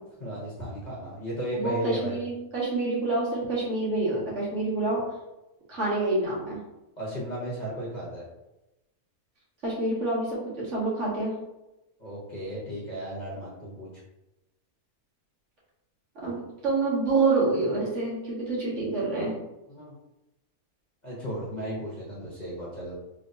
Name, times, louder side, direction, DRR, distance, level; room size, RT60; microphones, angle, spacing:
voice 1, 0.2-2.2 7.0-8.2 12.0-13.9 19.7-19.9 21.0-22.9, equal, 35° left, -7 dB, 1.0 m, -35 dB
voice 2, 1.5-5.0 5.7-6.6 9.6-11.3 16.2-19.3, right 3 dB, 55° right, -7 dB, 1.7 m, -27 dB
3.9 x 3.1 x 2.6 m, 0.95 s
omnidirectional pair, 1.5 m